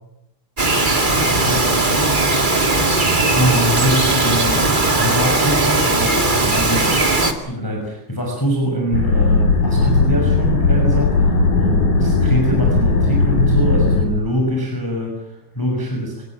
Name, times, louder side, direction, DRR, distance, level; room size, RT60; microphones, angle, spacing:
Bird vocalization bird call bird song, 0.6-7.3, right 2 dB, 20° right, 1.3 m, -17 dB
voice 1, 3.3-7.1 7.4-16.2, equal, 5° left, 0 dB, 5.7 m, -23 dB
sound 1, 8.9-14.0, left 3 dB, 55° left, 6.9 m, -16 dB
24.5 x 19.0 x 8.8 m, 0.83 s
omnidirectional pair, 4.4 m